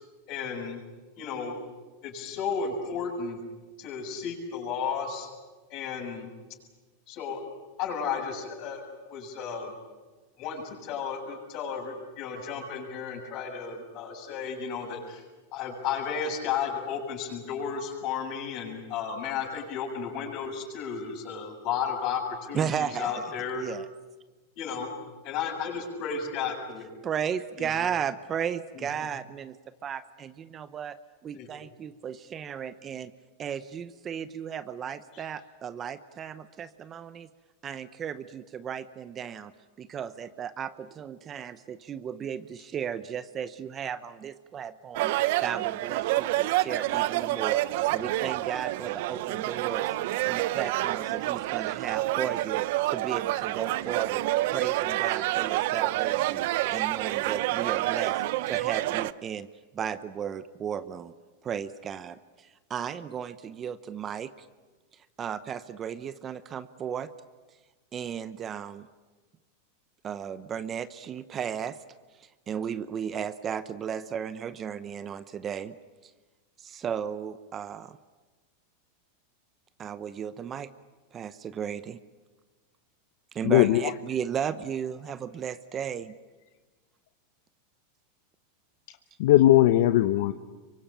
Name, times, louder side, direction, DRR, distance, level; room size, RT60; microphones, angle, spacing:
voice 1, 0.3-0.8 1.2-1.6 2.0-3.4 3.8-5.3 5.7-6.3 7.1-7.4 7.8-8.8 9.1-9.7 10.4-15.2 15.5-22.2 22.5-23.6 24.6-24.9 25.3-26.9 27.6-27.7 28.8-28.9 31.3-31.5 35.1-35.2, left 6 dB, 45° left, 2 dB, 7.5 m, -33 dB
voice 2, 22.5-23.2 23.6-23.9 27.0-29.6 29.8-31.0 31.2-33.1 33.4-37.3 37.6-39.5 39.8-49.9 50.2-54.2 54.5-56.4 56.7-59.5 59.7-61.1 61.4-64.5 64.9-67.1 67.9-68.9 70.0-71.8 72.2-75.8 76.0-76.1 76.6-78.0 79.8-80.7 81.1-82.0 83.3-86.1, right 8 dB, 25° right, 14 dB, 0.8 m, -35 dB
sound 1, 44.9-59.1, right 16 dB, 60° right, 0.8 m, -28 dB
voice 3, 83.4-83.9 89.2-90.3, left 14 dB, 65° left, 10 dB, 0.9 m, -19 dB
26.0 x 24.0 x 8.9 m, 1.3 s
supercardioid pair, 140°, 0 cm